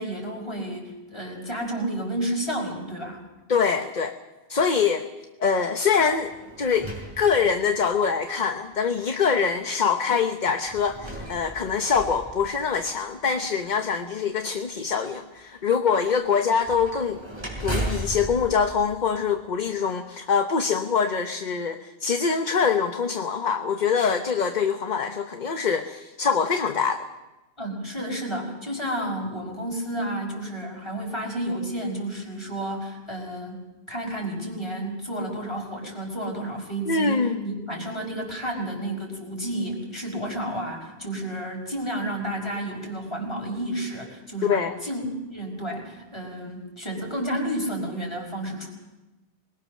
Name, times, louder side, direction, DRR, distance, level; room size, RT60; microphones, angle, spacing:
voice 1, 0.0-3.2 27.6-48.7, right 1 dB, 25° left, 0 dB, 5.5 m, -31 dB
voice 2, 3.5-4.1 4.5-5.1 5.4-6.3 6.6-17.2 17.6-27.0 36.9-37.4 44.4-44.7, left 6 dB, 45° left, 6 dB, 1.0 m, -24 dB
sound 1, 6.0-8.0 8.7-8.8 10.7-13.2 16.6-19.7, right 2 dB, 25° right, 6.0 m, -36 dB
26.0 x 21.0 x 6.4 m, 1.1 s
omnidirectional pair, 1.1 m